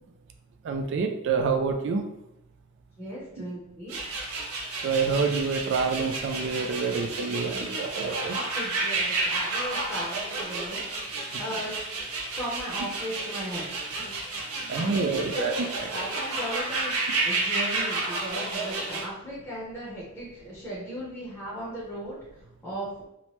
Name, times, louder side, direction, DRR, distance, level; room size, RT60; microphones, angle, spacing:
voice 1, 0.6-2.0 4.8-8.4 14.7-15.5, right 5 dB, 55° right, 5 dB, 0.3 m, -27 dB
voice 2, 3.0-4.0 8.3-10.8 11.4-11.7 12.4-13.7 14.0-14.2 14.7-15.5 15.9-16.9 17.2-22.2 22.6-22.9, equal, 10° left, -8 dB, 0.7 m, -36 dB
sound 1, 3.9-19.0, right 3 dB, 80° right, 0.7 m, -31 dB
2.9 x 2.1 x 3.0 m, 0.83 s
head